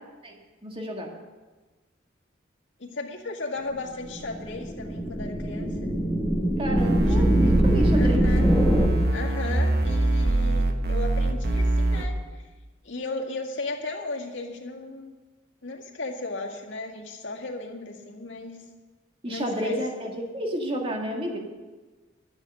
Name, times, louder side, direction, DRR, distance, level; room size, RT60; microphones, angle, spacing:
voice 1, 0.6-1.1 6.6-8.3 19.2-21.4, equal, 30° right, 1 dB, 1.9 m, -31 dB
voice 2, 2.8-5.9 7.1-7.2 7.4-7.6 8.0-8.5 9.1-12.5 12.8-15.1 15.6-18.6 19.3-19.8, left 2 dB, 75° left, -1 dB, 2.0 m, -35 dB
sound 1, 4.0-8.9, equal, ahead, 1.3 m, -24 dB
sound 2, 6.8-12.1, right 2 dB, 55° right, 1.3 m, -23 dB
12.0 x 8.0 x 7.7 m, 1.3 s
head